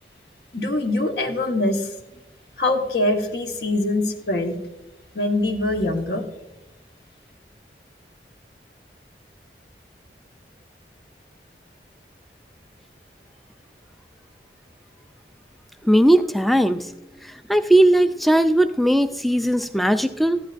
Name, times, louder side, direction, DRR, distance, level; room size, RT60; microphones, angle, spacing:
voice 1, 0.5-1.9 2.6-4.6 5.1-6.3, left 2 dB, 65° left, 4 dB, 1.1 m, -23 dB
voice 2, 15.8-16.9 17.5-20.4, right 1 dB, ahead, 10 dB, 0.3 m, -18 dB
14.0 x 10.5 x 2.5 m, 0.96 s
head